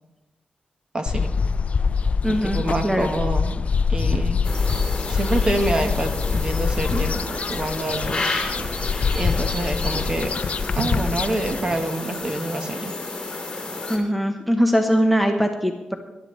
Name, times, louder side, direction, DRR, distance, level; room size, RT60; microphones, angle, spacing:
voice 1, 0.9-1.4 2.3-3.6 3.9-4.4 5.1-8.3 9.1-10.3 10.7-12.9, right 1 dB, 30° right, 5 dB, 1.2 m, -27 dB
sound 1, 1.1-11.6, left 5 dB, 45° left, 0.5 m, -24 dB
voice 2, 2.2-3.1 13.9-15.9, equal, ahead, 4 dB, 0.9 m, -21 dB
sound 2, 4.0-9.7 9.9-12.8, right 2 dB, 80° right, 1.6 m, -37 dB
sound 3, 4.4-14.0, left 2 dB, 25° left, 3.0 m, -31 dB
20.0 x 11.5 x 3.2 m, 1.0 s
wide cardioid pair, 155°, 3 cm